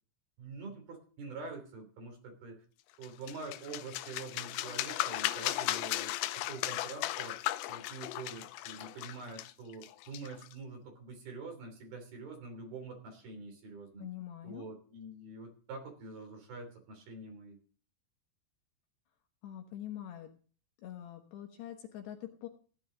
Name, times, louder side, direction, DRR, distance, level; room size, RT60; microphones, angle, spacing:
voice 1, 0.4-2.6 3.0-14.1 14.4-17.6, right 3 dB, 55° right, 4 dB, 4.8 m, -46 dB
sound 1, 3.0-10.5, left 16 dB, 85° left, 3.3 m, -36 dB
voice 2, 14.0-14.7 19.4-20.3 20.8-22.5, left 12 dB, 70° left, 4 dB, 3.1 m, -44 dB
16.5 x 10.0 x 3.8 m, 0.41 s
omnidirectional pair, 5.7 m